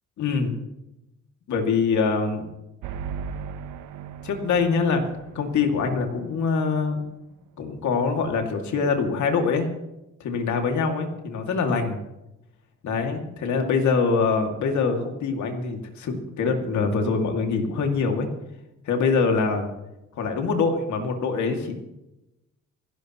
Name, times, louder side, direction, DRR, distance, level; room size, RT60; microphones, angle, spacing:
voice 1, 0.2-0.6 1.5-2.5 4.2-5.0 5.3-7.0 7.6-9.7 10.2-12.0 12.8-18.3 18.8-19.7 20.2-21.8, left 5 dB, 70° left, 3 dB, 2.6 m, -24 dB
sound 1, 2.8-6.4, right 6 dB, 90° right, 1.0 m, -37 dB
28.5 x 12.0 x 3.1 m, 0.94 s
cardioid pair, 90°, 30 cm